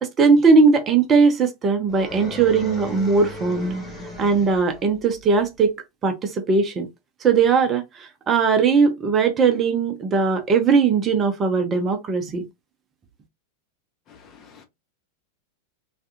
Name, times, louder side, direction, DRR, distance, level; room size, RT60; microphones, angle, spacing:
voice 1, 0.0-3.7 4.2-5.7 6.0-6.9 7.2-12.4, right 5 dB, 25° right, 0.7 m, -19 dB
sound 1, 1.9-4.8, equal, ahead, 1.4 m, -34 dB
voice 2, 14.1-14.6, left 6 dB, 30° left, 0.7 m, -49 dB
3.3 x 2.4 x 2.8 m
figure-of-eight pair, 90°, 0 cm